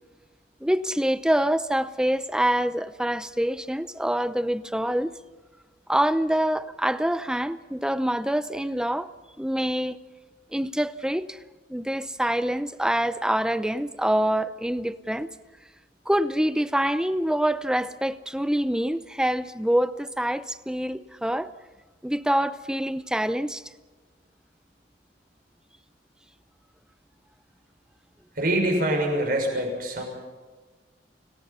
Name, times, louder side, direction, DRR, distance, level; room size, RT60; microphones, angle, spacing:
voice 1, 0.6-5.1 5.9-9.1 9.4-10.0 10.5-11.4 11.7-15.3 16.1-21.5 22.0-23.6, right 1 dB, 5° right, 0.6 m, -25 dB
voice 2, 28.3-30.0, right 1 dB, 55° right, 6.4 m, -24 dB
29.5 x 18.5 x 5.6 m
head